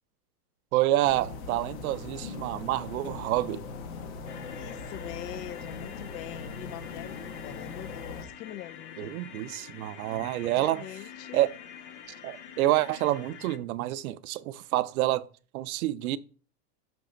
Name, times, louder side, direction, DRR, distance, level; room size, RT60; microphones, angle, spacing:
voice 1, 0.7-3.6 9.0-10.8 11.3-11.5 12.2-15.3 15.5-16.2, right 15 dB, 60° right, 0.5 m, -28 dB
sound 1, 1.0-8.2, left 4 dB, 55° left, 1.3 m, -40 dB
sound 2, 4.3-13.6, left 8 dB, 35° left, 0.4 m, -46 dB
voice 2, 4.5-9.1 10.5-11.4, left 13 dB, 75° left, 0.7 m, -43 dB
6.0 x 3.2 x 5.1 m
supercardioid pair, 155°, 50 cm